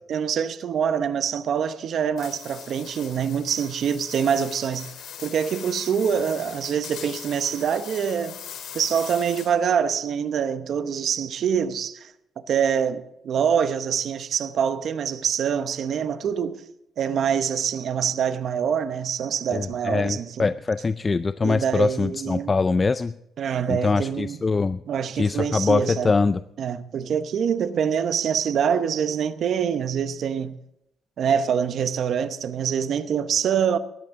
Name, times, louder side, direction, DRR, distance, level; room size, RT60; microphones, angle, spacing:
voice 1, 0.1-4.9 5.2-8.3 8.7-12.1 12.5-16.6 17.0-20.5 21.4-22.5 23.4-24.4 24.9-26.2 26.6-30.6 31.2-33.8, right 7 dB, 65° right, 0.8 m, -25 dB
sound 1, 2.2-9.7, left 8 dB, 75° left, 3.3 m, -40 dB
voice 2, 19.5-23.1 23.7-24.8 25.1-26.4, left 4 dB, 30° left, 0.4 m, -23 dB
18.5 x 13.5 x 3.7 m
cardioid pair, 90°, 0 cm